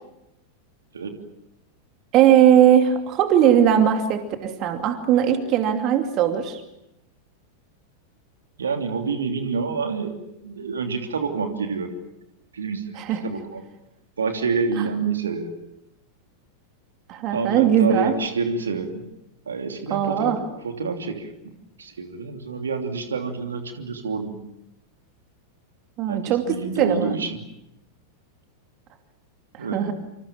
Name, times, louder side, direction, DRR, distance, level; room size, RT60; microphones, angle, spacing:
voice 1, 2.1-6.6 12.9-13.2 14.8-14.9 17.1-18.2 19.9-20.4 26.0-27.2 29.5-29.9, right 9 dB, 35° right, 6 dB, 2.6 m, -19 dB
voice 2, 8.6-10.2 10.4-11.9 12.5-13.6 14.2-15.5 17.3-19.1 19.5-20.3 20.6-24.4 26.1-27.4 29.6-29.9, right 5 dB, 70° right, 5 dB, 3.0 m, -28 dB
28.0 x 26.5 x 7.4 m, 0.87 s
figure-of-eight pair, 90°, 0 cm